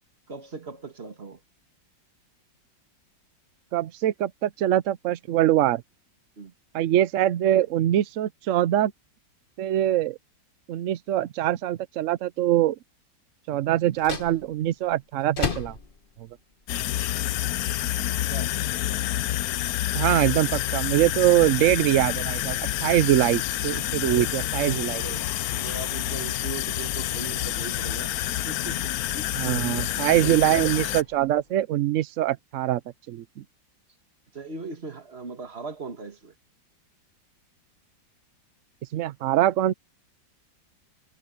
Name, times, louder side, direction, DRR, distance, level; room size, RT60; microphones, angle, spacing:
voice 1, 0.3-1.4 6.4-6.5 18.3-18.5 24.1-24.4 24.9-28.1 28.5-30.8 34.3-36.3, right 3 dB, 35° right, 2.1 m, -39 dB
voice 2, 3.7-5.8 6.7-8.9 9.6-10.2 10.7-12.8 13.5-15.8 19.9-25.0 29.4-32.8 33.1-33.4 38.9-39.7, right 13 dB, 85° right, 0.6 m, -23 dB
sound 1, 13.8-31.6, left 4 dB, 30° left, 1.3 m, -41 dB
sound 2, 16.7-31.0, left 14 dB, 70° left, 0.9 m, -28 dB
omnidirectional pair, 2.0 m